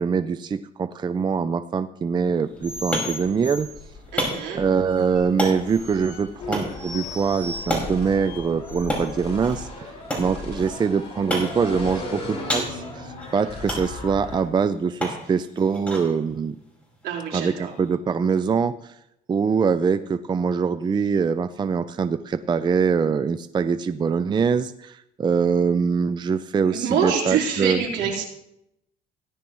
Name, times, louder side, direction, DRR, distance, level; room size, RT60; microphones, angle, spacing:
voice 1, 0.0-3.7 4.5-9.9 10.2-16.6 17.3-19.0 19.3-27.8, right 6 dB, 25° right, 12 dB, 0.5 m, -23 dB
sound 1, 2.3-17.9, equal, 5° left, 5.0 m, -34 dB
sound 2, 2.6-9.2, left 3 dB, 55° left, 4.1 m, -38 dB
voice 2, 4.1-4.6 17.0-17.7 26.7-28.2, right 7 dB, 75° right, -2 dB, 4.1 m, -25 dB
sound 3, 6.4-14.4, left 2 dB, 35° left, 5.0 m, -36 dB
17.5 x 11.0 x 3.1 m, 0.80 s
cardioid pair, 110°, 17 cm